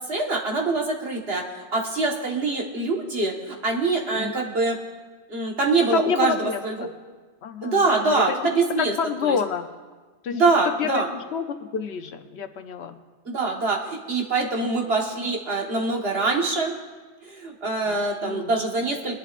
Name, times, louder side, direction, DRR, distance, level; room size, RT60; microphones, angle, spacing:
voice 1, 0.1-1.4 1.7-4.7 5.3-6.3 6.6-6.9 7.6-8.9 9.2-9.4 10.3-11.1 13.2-16.7 17.2-19.2, right 3 dB, 65° right, 0 dB, 1.7 m, -24 dB
voice 2, 5.9-6.9 7.4-8.4 8.8-9.7 10.2-10.4 10.8-11.5 11.7-13.0 14.6-14.7 17.9-18.5, left 6 dB, 70° left, 8 dB, 1.0 m, -28 dB
21.5 x 11.5 x 2.5 m, 1.4 s
omnidirectional pair, 1.1 m